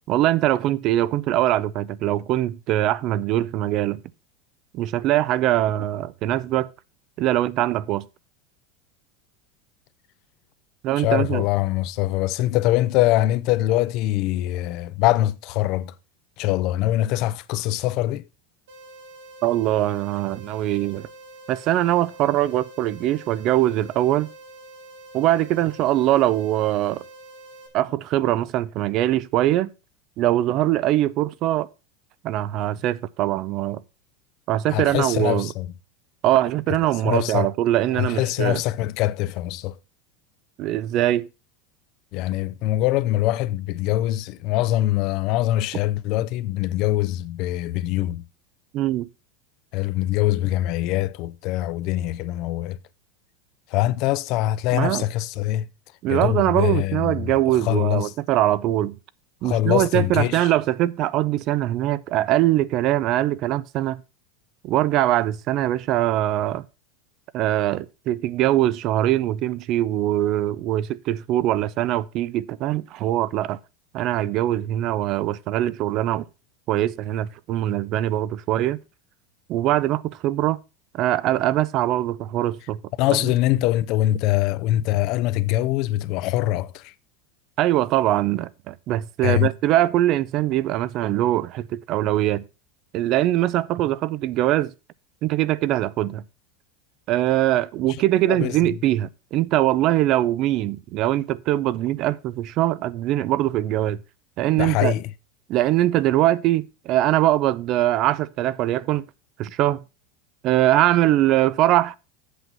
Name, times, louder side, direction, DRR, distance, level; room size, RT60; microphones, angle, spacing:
voice 1, 0.1-4.0 4.7-6.7 7.2-8.0 10.8-11.4 19.4-21.1 21.5-24.3 25.1-27.0 27.7-29.7 30.2-31.7 32.2-33.8 34.5-35.5 36.2-38.6 40.6-41.3 48.7-49.1 54.7-55.1 56.0-59.0 59.4-64.0 64.6-66.6 67.3-73.6 73.9-76.2 76.7-78.8 79.5-80.6 80.9-82.8 87.6-92.4 92.9-94.7 95.2-96.2 97.1-104.0 104.4-104.9 105.5-109.0 109.4-109.8 110.4-112.0, right 14 dB, 45° right, 0.4 m, -22 dB
voice 2, 11.0-15.9 16.4-18.2 34.7-35.7 37.0-37.5 37.9-39.8 42.1-48.2 49.7-52.8 53.7-55.7 56.1-57.3 57.6-58.1 59.4-60.5 83.0-86.9 89.2-89.5 98.3-98.5 104.6-105.1, left 15 dB, 50° left, 0.5 m, -23 dB
sound 1, 18.7-27.7, right 2 dB, 85° right, 3.5 m, -45 dB
8.3 x 6.1 x 5.4 m
supercardioid pair, 145°, 0 cm